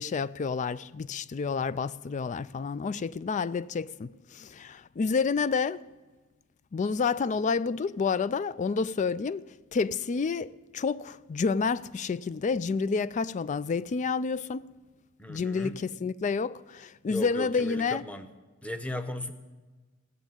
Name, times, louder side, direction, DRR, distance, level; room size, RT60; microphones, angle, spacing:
voice 1, 0.0-5.8 6.7-9.4 9.7-14.7 15.3-18.0, left 5 dB, 35° left, 0.3 m, -29 dB
voice 2, 15.2-15.8 17.1-18.3 18.6-19.3, left 1 dB, 5° left, 0.9 m, -36 dB
16.5 x 7.2 x 9.0 m
head